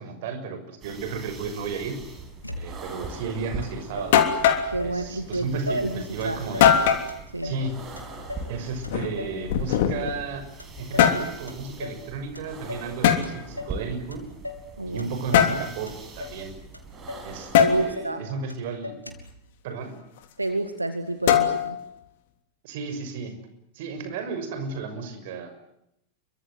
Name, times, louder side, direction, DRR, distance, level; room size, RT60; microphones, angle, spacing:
voice 1, 0.0-2.0 2.6-4.2 4.8-6.8 7.4-7.8 8.5-10.5 10.8-14.2 14.8-16.5 17.2-18.9 19.6-20.0 22.6-23.4 23.7-25.7, right 4 dB, 50° right, 8 dB, 6.4 m, -33 dB
sound 1, 0.8-17.9, right 3 dB, 25° right, 7.2 m, -42 dB
Motor vehicle (road), 2.4-3.1 3.6-3.7 4.0-5.0 5.3-5.9 6.2-6.8 7.1-8.6 8.8-9.4 9.7-10.3 10.6-11.2 11.5-12.1 12.4-12.9 13.2-13.8 14.1-14.7 15.0-15.6 15.9-16.4 16.7-16.8 17.1-17.3 17.6-18.2 18.5-18.6 18.8-19.4, left 2 dB, 85° left, 3.4 m, -39 dB
sound 2, 3.6-3.7 4.1-4.7 6.6-7.1 8.8-10.2 10.8-11.3 13.0-13.2 15.3-15.6 17.5-17.8 21.3-21.8, left 9 dB, 55° left, 3.1 m, -20 dB
voice 2, 4.7-6.4 7.3-7.5 14.8-15.1 17.6-18.3 20.4-21.8, right 2 dB, 85° right, 8 dB, 2.0 m, -29 dB
29.0 x 24.0 x 7.8 m, 0.79 s
figure-of-eight pair, 90°, 0 cm